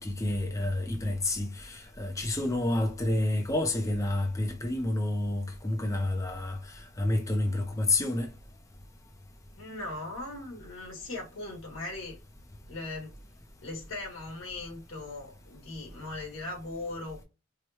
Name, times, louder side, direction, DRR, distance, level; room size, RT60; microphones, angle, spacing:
voice 1, 0.0-8.3, left 1 dB, 15° left, 0.5 m, -29 dB
voice 2, 9.5-12.2 12.7-13.1 13.6-17.2, left 2 dB, 80° left, 1.7 m, -39 dB
4.7 x 2.1 x 2.9 m
head